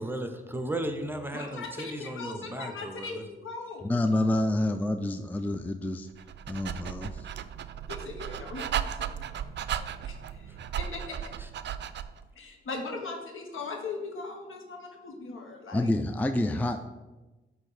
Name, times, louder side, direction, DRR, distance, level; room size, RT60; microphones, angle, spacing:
voice 1, 0.0-3.2 10.5-10.6 11.4-11.5, right 1 dB, 10° right, 6 dB, 0.8 m, -35 dB
voice 2, 1.3-3.9 7.9-9.0 9.7-11.0 12.4-15.9, left 3 dB, 70° left, 2 dB, 1.2 m, -39 dB
voice 3, 3.8-6.1 6.5-7.3 15.7-16.8, left 1 dB, 10° left, 7 dB, 0.4 m, -28 dB
Dog, 6.1-12.2, right 9 dB, 55° right, 0.4 m, -35 dB
7.6 x 2.7 x 5.5 m, 1.1 s
cardioid pair, 60°, 21 cm